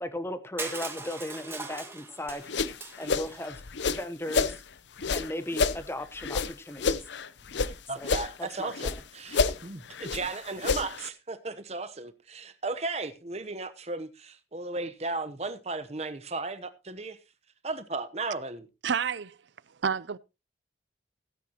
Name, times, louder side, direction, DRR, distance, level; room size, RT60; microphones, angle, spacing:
voice 1, 0.0-2.4 3.0-4.6 5.1-7.0 8.0-8.1 8.6-9.0, left 1 dB, 15° left, 1.0 m, -36 dB
Crushing, 0.6-3.5, right 3 dB, 15° right, 1.8 m, -40 dB
sound 1, 2.3-4.6 5.0-7.7 8.0-9.0 9.3-11.1, left 4 dB, 75° left, 0.7 m, -29 dB
voice 2, 7.5-17.2 17.6-18.7, right 3 dB, 35° right, 0.9 m, -35 dB
voice 3, 18.8-19.4 19.7-20.2, right 7 dB, 75° right, 0.5 m, -29 dB
17.0 x 9.4 x 2.9 m
head